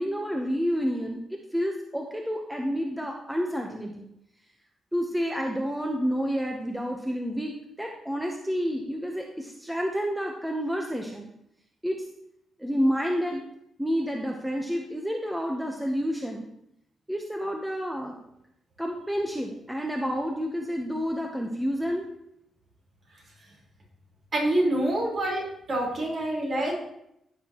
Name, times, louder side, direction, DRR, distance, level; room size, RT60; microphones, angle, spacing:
voice 1, 0.0-4.0 4.9-11.3 11.8-12.0 12.6-13.4 13.8-16.5 17.1-18.1 18.8-22.0, equal, 5° right, 1 dB, 0.8 m, -29 dB
voice 2, 24.3-25.4 25.7-26.7, right 1 dB, 50° right, -3 dB, 4.1 m, -26 dB
14.5 x 6.6 x 3.0 m, 0.79 s
cardioid pair, 105°, 0 cm